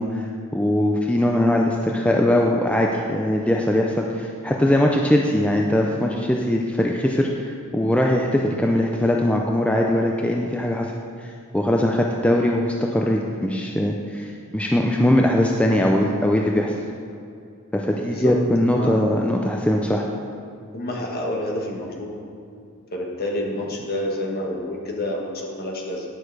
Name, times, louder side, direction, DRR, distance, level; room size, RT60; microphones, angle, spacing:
voice 1, 0.0-10.9 11.2-16.8 17.7-20.0, left 1 dB, 5° left, 0 dB, 0.4 m, -21 dB
voice 2, 18.0-19.0 20.7-22.2 22.9-26.0, left 1 dB, 45° left, -1 dB, 1.5 m, -28 dB
10.0 x 6.6 x 4.8 m, 2.5 s
head